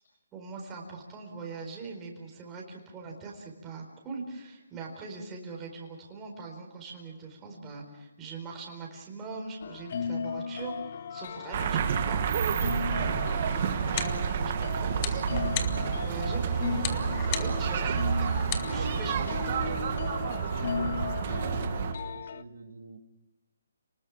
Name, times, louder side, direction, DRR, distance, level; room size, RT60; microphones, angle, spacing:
voice 1, 0.3-12.2 13.0-13.6 14.3-18.3 18.7-19.4, right 3 dB, 15° right, 0 dB, 4.3 m, -41 dB
sound 1, 9.6-22.4, left 6 dB, 45° left, 0.8 m, -37 dB
sound 2, 11.5-21.9, right 7 dB, 35° right, 1.5 m, -29 dB
sound 3, 13.6-20.1, left 9 dB, 25° left, 1.5 m, -39 dB
voice 2, 18.7-20.0 20.4-23.0, right 3 dB, 80° right, 3 dB, 3.0 m, -43 dB
30.0 x 20.0 x 6.2 m, 0.91 s
hypercardioid pair, 165°, 0 cm